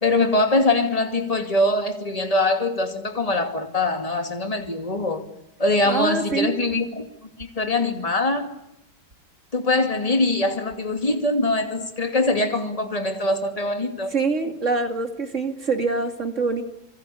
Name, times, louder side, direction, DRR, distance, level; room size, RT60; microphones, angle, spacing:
voice 1, 0.0-5.2 5.6-7.0 7.4-8.5 9.5-14.2, left 2 dB, 20° left, 2.6 m, -23 dB
voice 2, 5.8-6.5 14.1-16.6, right 4 dB, 45° right, 2.9 m, -25 dB
27.0 x 25.0 x 8.6 m
omnidirectional pair, 1.8 m